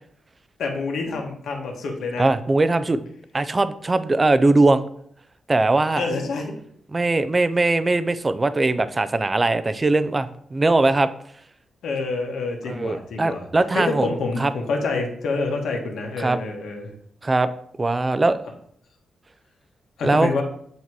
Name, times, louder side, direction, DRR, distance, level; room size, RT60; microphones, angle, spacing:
voice 1, 0.6-2.2 5.9-6.6 11.8-13.5 13.7-16.9 20.0-20.4, left 3 dB, 80° left, 1 dB, 1.3 m, -27 dB
voice 2, 2.2-3.0 3.3-4.9 5.5-6.1 6.9-11.1 12.7-14.1 14.4-14.5 16.2-16.4 17.2-17.5 17.8-18.4 20.0-20.3, right 2 dB, 20° right, 12 dB, 0.3 m, -20 dB
8.0 x 2.9 x 4.6 m, 0.65 s
wide cardioid pair, 160°, 0 cm